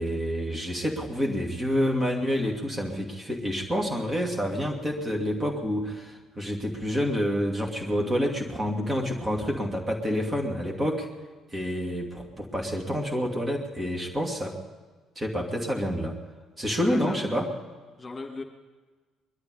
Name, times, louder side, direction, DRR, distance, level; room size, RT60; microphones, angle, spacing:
voice 1, 0.0-11.1 11.5-14.6 15.2-16.2 16.6-17.5, equal, 25° right, 0 dB, 2.6 m, -28 dB
voice 2, 16.9-17.5 18.0-18.4, left 3 dB, 30° left, 2 dB, 2.1 m, -39 dB
21.0 x 12.0 x 5.5 m, 1.4 s
figure-of-eight pair, 50°, 0 cm